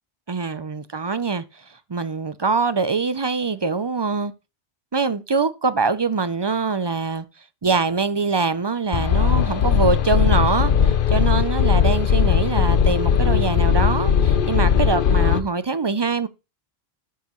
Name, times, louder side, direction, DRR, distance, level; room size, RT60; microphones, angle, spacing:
voice 1, 0.3-1.6 1.9-4.3 4.9-7.2 7.6-16.3, right 4 dB, 40° right, 0.4 m, -23 dB
sound 1, 8.9-15.4, left 7 dB, 55° left, 0.9 m, -18 dB
12.5 x 7.1 x 3.0 m
omnidirectional pair, 1.1 m